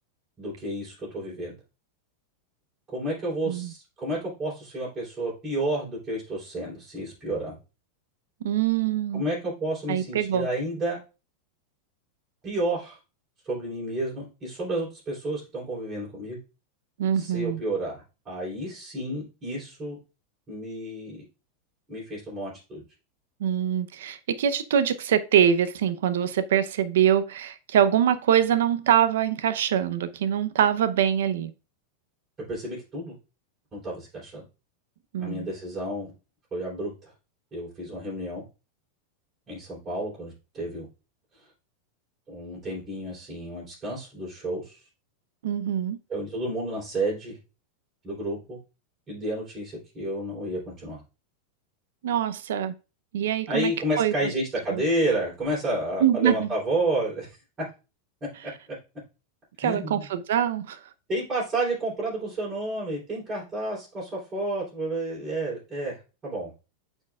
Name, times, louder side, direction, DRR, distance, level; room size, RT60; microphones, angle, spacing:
voice 1, 0.4-1.5 2.9-7.6 9.1-11.0 12.4-13.0 13.4-16.4 17.2-20.0 20.5-21.2 21.9-22.8 32.5-33.2 33.7-34.4 35.2-36.1 36.5-37.1 37.5-38.4 39.5-40.9 42.3-44.8 46.1-47.4 48.0-48.6 49.1-51.0 53.5-57.4 59.6-60.1 61.1-66.5, right 1 dB, 20° right, 3.7 m, -31 dB
voice 2, 8.4-9.2 9.9-10.5 17.0-17.6 23.4-31.5 35.1-35.5 45.4-46.0 52.0-52.7 53.1-53.7 54.0-54.3 54.7-54.8 56.0-56.5 59.6-60.8, right 9 dB, 85° right, 0.7 m, -24 dB
8.8 x 4.6 x 2.4 m
supercardioid pair, 145°, 0 cm